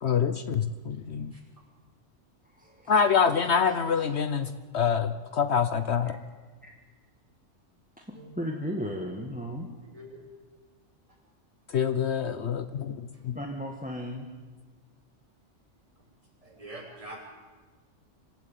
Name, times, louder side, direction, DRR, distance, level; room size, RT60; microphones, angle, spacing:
voice 1, 0.0-1.3 2.9-6.2 11.7-13.4, left 6 dB, 60° left, 11 dB, 1.1 m, -26 dB
voice 2, 2.4-3.0 3.3-3.8 6.6-6.7 8.0-9.7 13.3-14.3, equal, 5° right, 1 dB, 1.8 m, -36 dB
voice 3, 16.4-17.2, right 1 dB, 25° right, -3 dB, 6.4 m, -44 dB
26.0 x 16.0 x 9.1 m, 1.4 s
omnidirectional pair, 1.3 m